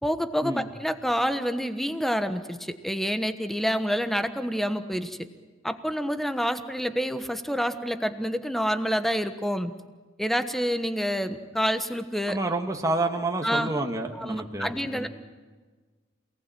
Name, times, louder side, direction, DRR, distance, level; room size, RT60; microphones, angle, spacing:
voice 1, 0.0-5.2 5.6-9.7 10.2-12.4 13.4-13.7 14.1-15.1, equal, ahead, 9 dB, 1.2 m, -28 dB
voice 2, 12.3-15.1, right 2 dB, 15° right, 3 dB, 1.6 m, -29 dB
28.0 x 18.5 x 9.2 m, 1.4 s
head